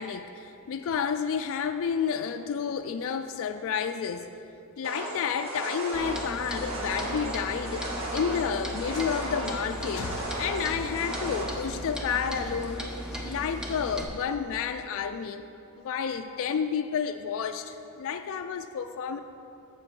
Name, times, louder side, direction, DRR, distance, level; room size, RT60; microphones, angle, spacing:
voice 1, 0.0-4.3 4.8-15.4 15.8-19.2, left 7 dB, 65° left, 7 dB, 0.3 m, -31 dB
sound 1, 4.8-11.4, right 1 dB, 65° right, 2.0 m, -35 dB
Clock, 5.9-14.0, equal, 5° right, 0.8 m, -37 dB
7.6 x 7.3 x 5.4 m, 2.7 s
head